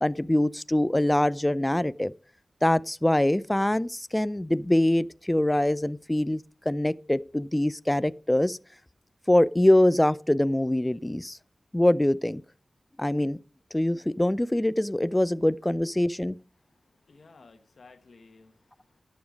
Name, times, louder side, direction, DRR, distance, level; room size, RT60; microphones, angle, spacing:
voice 1, 0.0-2.1 2.6-8.6 9.3-11.4 11.7-12.4 13.0-13.4 13.7-16.4, left 1 dB, 15° left, 0.4 m, -24 dB
voice 2, 16.6-19.0, left 3 dB, 70° left, 1.4 m, -55 dB
11.5 x 7.2 x 5.2 m
cardioid pair, 50°, 0 cm